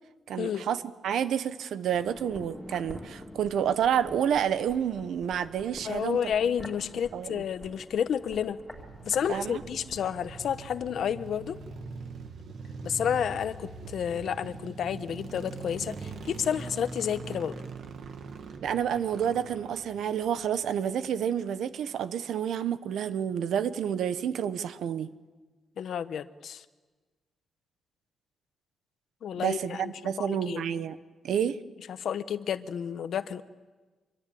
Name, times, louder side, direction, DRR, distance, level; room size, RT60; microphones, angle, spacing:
voice 1, 0.3-6.3 7.1-7.4 9.3-9.6 18.6-25.1 29.3-31.0 31.2-31.6, right 8 dB, 80° right, 13 dB, 1.1 m, -29 dB
sound 1, 1.9-10.9 11.2-11.3, left 1 dB, 5° left, 3.4 m, -48 dB
voice 2, 5.8-8.6 9.0-11.6 12.8-17.6 25.8-26.6 29.2-29.9 30.2-30.6 31.9-33.4, left 8 dB, 65° left, 12 dB, 1.0 m, -30 dB
sound 2, 8.7-20.9, right 4 dB, 60° right, 1.9 m, -42 dB
25.5 x 24.0 x 8.7 m, 1.3 s
wide cardioid pair, 175°, 0 cm